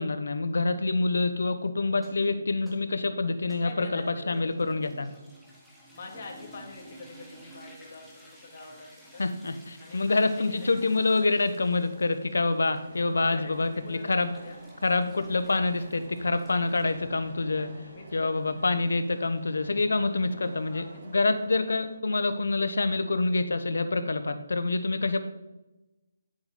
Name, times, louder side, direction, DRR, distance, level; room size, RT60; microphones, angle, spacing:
voice 1, 0.0-5.1 9.2-14.3 14.8-17.7 18.1-25.2, left 3 dB, 85° left, 10 dB, 1.1 m, -26 dB
sound 1, 1.9-17.0, equal, ahead, 1.2 m, -53 dB
voice 2, 3.6-4.7 5.9-9.2 9.8-10.7 13.1-14.6 17.5-18.3 18.6-18.7 20.7-21.3, left 3 dB, 40° left, 1 dB, 2.2 m, -45 dB
sound 2, 12.7-22.0, right 3 dB, 40° right, 2.0 m, -50 dB
10.5 x 7.7 x 4.3 m, 1.0 s
hypercardioid pair, 170°, 0 cm